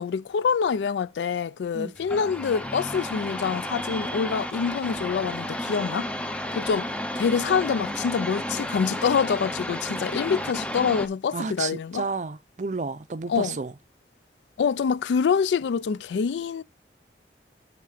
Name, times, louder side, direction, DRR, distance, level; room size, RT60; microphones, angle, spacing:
voice 1, 0.0-6.1 6.5-6.9 7.2-12.0 13.3-13.6 14.6-16.6, left 6 dB, 85° left, 0.3 m, -26 dB
sound 1, 2.0-11.1, left 1 dB, 5° left, 0.5 m, -32 dB
voice 2, 11.3-13.7, right 4 dB, 45° right, 0.5 m, -31 dB
9.5 x 3.6 x 4.9 m
head